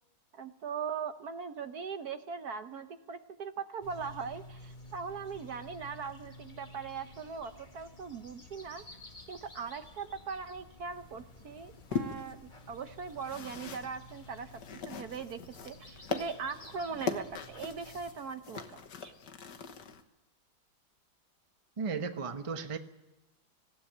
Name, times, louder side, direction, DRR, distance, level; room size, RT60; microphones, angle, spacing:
voice 1, 0.3-8.8 9.3-19.1, right 5 dB, 60° right, 9 dB, 1.2 m, -40 dB
sound 1, 3.8-18.1, left 1 dB, 25° left, 1.9 m, -52 dB
sound 2, 10.9-20.0, left 5 dB, 60° left, 1.8 m, -41 dB
voice 2, 21.8-22.8, right 5 dB, 25° right, 7 dB, 0.7 m, -35 dB
19.5 x 16.0 x 8.9 m, 1.0 s
omnidirectional pair, 2.2 m